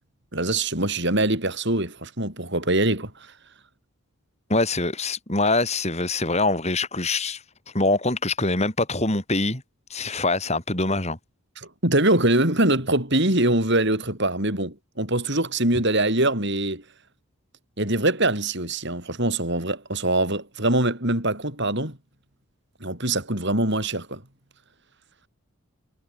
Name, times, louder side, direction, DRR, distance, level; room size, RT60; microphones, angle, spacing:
voice 1, 0.3-3.3 11.8-16.8 17.8-22.0 22.8-24.2, right 1 dB, 50° right, 7.0 m, -23 dB
voice 2, 4.5-7.4 7.7-9.6 9.9-11.2, left 2 dB, 30° left, 4.6 m, -24 dB
head